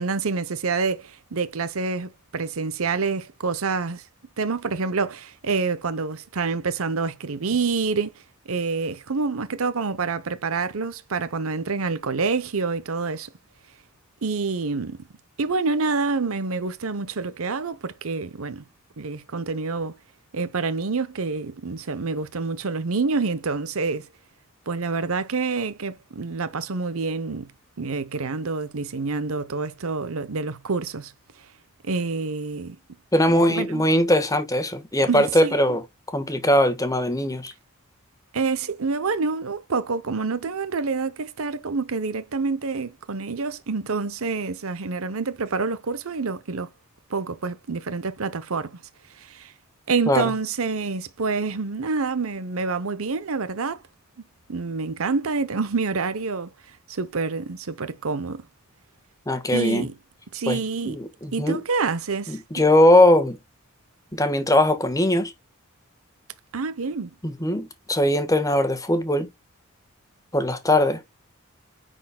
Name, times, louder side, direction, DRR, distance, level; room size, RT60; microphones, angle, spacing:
voice 1, 0.0-4.0 4.4-13.3 14.2-15.1 15.4-18.6 19.0-20.0 20.3-24.1 24.7-27.5 27.8-31.1 31.4-31.5 31.8-32.8 33.3-33.9 35.1-35.8 38.3-46.7 47.1-48.8 49.1-49.5 49.9-53.8 54.5-58.5 59.5-59.9 60.3-61.0 61.3-62.6 66.5-67.1, right 4 dB, 75° right, 0.8 m, -27 dB
voice 2, 33.1-35.8 36.1-37.5 50.1-50.3 59.3-59.9 60.5-61.6 62.3-63.4 64.1-65.3 67.2-69.3 70.3-71.0, left 1 dB, 15° left, 1.4 m, -20 dB
9.9 x 4.4 x 2.2 m
head